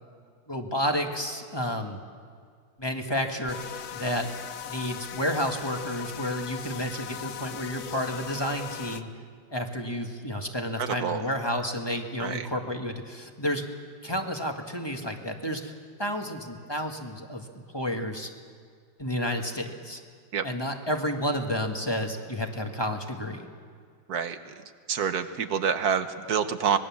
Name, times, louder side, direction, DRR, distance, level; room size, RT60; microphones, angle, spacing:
voice 1, 0.5-2.0 2.8-4.3 4.6-9.1 9.5-13.6 14.0-15.7 16.0-18.3 19.0-20.0 20.4-23.5, equal, 15° left, 3 dB, 1.6 m, -31 dB
sound 1, 3.5-9.0, left 9 dB, 60° left, 1.2 m, -39 dB
voice 2, 10.8-11.2 12.2-12.5 20.3-20.4 24.1-24.5 24.9-26.8, right 7 dB, 60° right, 9 dB, 1.4 m, -27 dB
25.5 x 20.5 x 7.3 m, 2.1 s
omnidirectional pair, 2.1 m